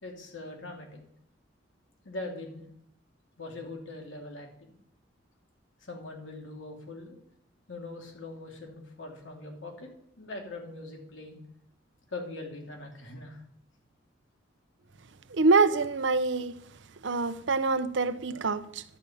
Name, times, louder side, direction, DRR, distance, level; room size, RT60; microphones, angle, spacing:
voice 1, 0.0-1.0 2.0-2.7 3.4-4.5 5.8-7.2 7.7-9.9 10.2-11.4 12.1-13.4, left 2 dB, 85° left, 2.5 m, -41 dB
voice 2, 15.3-16.5 17.0-18.8, right 3 dB, 70° right, 0.7 m, -25 dB
11.5 x 5.5 x 8.4 m
head